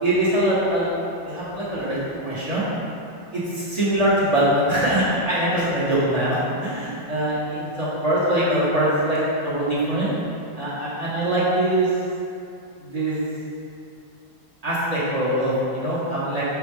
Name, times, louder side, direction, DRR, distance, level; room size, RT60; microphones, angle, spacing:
voice 1, 0.0-0.9 1.2-2.6 3.3-10.1 10.6-11.9 12.8-13.2 14.6-16.4, right 1 dB, 25° right, -10 dB, 1.1 m, -23 dB
6.0 x 4.5 x 3.6 m, 2.6 s
omnidirectional pair, 2.3 m